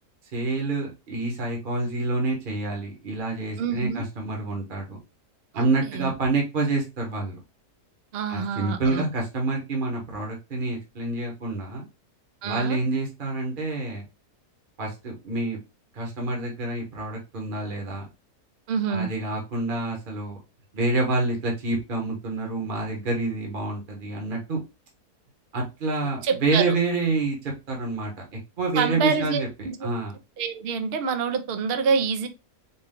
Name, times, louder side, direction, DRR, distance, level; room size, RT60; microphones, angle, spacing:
voice 1, 0.3-5.0 5.5-7.4 8.3-11.8 12.4-14.0 14.8-15.6 15.9-18.1 18.9-20.4 20.7-24.6 25.5-28.1 28.6-29.5 29.8-30.1, right 3 dB, 40° right, 0 dB, 1.1 m, -27 dB
voice 2, 3.6-4.0 5.5-5.7 5.9-6.1 8.1-9.1 12.4-12.8 18.7-19.1 26.2-26.8 28.7-29.8 30.4-32.3, right 6 dB, 65° right, 8 dB, 0.6 m, -26 dB
4.3 x 2.3 x 3.6 m, 0.26 s
omnidirectional pair, 1.6 m